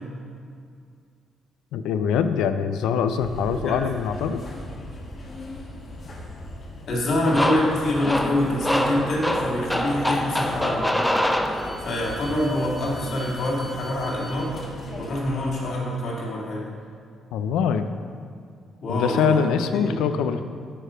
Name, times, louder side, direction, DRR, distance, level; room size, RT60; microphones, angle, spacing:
voice 1, 1.7-4.4 17.3-17.9 18.9-20.4, left 7 dB, 90° left, 10 dB, 0.4 m, -23 dB
sound 1, 3.2-15.6, left 1 dB, 50° left, 1.2 m, -38 dB
voice 2, 6.9-10.9 11.8-14.6 14.9-16.6 18.8-20.1, left 1 dB, 65° left, -4 dB, 2.0 m, -26 dB
sound 2, 7.3-12.1, left 1 dB, 5° left, 0.6 m, -25 dB
8.7 x 4.9 x 5.0 m, 2.2 s
cardioid pair, 90°, 0 cm